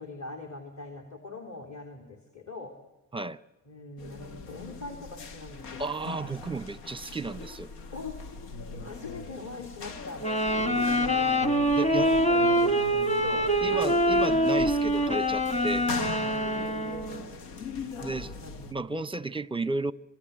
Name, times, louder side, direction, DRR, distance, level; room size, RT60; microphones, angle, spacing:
voice 1, 0.0-2.7 3.7-5.9 7.9-8.2 8.8-11.4 12.0-12.7 13.2-14.4 16.4-16.8 18.4-18.9, left 3 dB, 35° left, 3.5 m, -42 dB
sound 1, 4.0-18.7, left 4 dB, 90° left, 1.4 m, -40 dB
voice 2, 5.8-7.7 11.7-12.1 13.6-15.9 18.0-18.3 18.7-19.9, right 2 dB, 10° right, 0.8 m, -33 dB
sound 2, 10.2-17.3, equal, 15° left, 2.0 m, -25 dB
26.0 x 22.0 x 8.3 m
hypercardioid pair, 40°, 47 cm